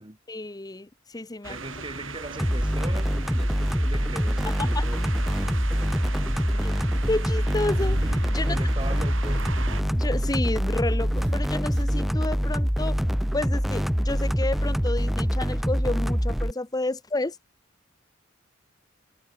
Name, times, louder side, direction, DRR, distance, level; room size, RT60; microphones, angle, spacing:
voice 1, 0.3-1.6 4.5-4.8 6.6-6.7 7.1-8.6 9.9-13.0 13.3-17.4, left 2 dB, 20° left, 0.9 m, -30 dB
sound 1, 1.4-9.8, right 4 dB, 75° right, 4.7 m, -38 dB
voice 2, 1.5-5.0 6.5-6.6 8.4-9.5, right 2 dB, 25° right, 2.7 m, -39 dB
sound 2, 2.4-16.5, equal, ahead, 0.4 m, -25 dB
Engine starting, 7.7-13.2, right 1 dB, 60° right, 3.4 m, -39 dB
head